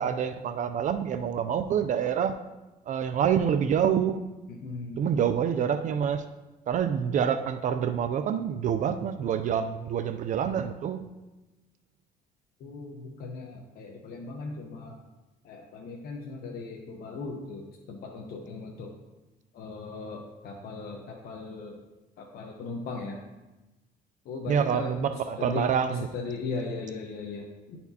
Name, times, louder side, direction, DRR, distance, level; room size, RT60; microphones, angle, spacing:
voice 1, 0.0-2.4 2.9-4.2 5.0-6.3 6.7-11.0 24.5-26.1, right 8 dB, 50° right, 9 dB, 0.4 m, -27 dB
voice 2, 4.6-5.2 12.6-15.0 15.4-18.9 19.5-21.8 22.2-23.2 24.2-25.0 25.4-25.6 25.9-27.8, left 3 dB, 65° left, 0 dB, 0.9 m, -38 dB
11.0 x 4.2 x 2.8 m, 1.1 s
cardioid pair, 110°, 17 cm